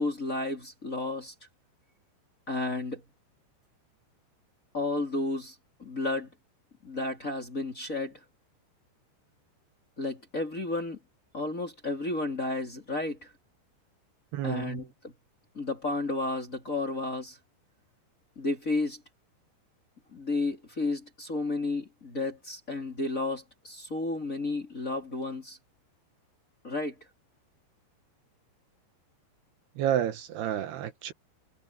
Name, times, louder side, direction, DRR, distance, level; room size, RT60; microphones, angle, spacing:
voice 1, 0.0-1.3 2.5-3.0 4.7-6.3 6.8-8.2 10.0-11.0 11.3-13.3 14.4-15.1 15.5-17.4 18.4-19.0 20.1-25.6 26.6-26.9, left 2 dB, 20° left, 2.9 m, -32 dB
voice 2, 14.3-14.8 29.8-31.1, right 11 dB, 75° right, 2.9 m, -30 dB
omnidirectional pair, 5.2 m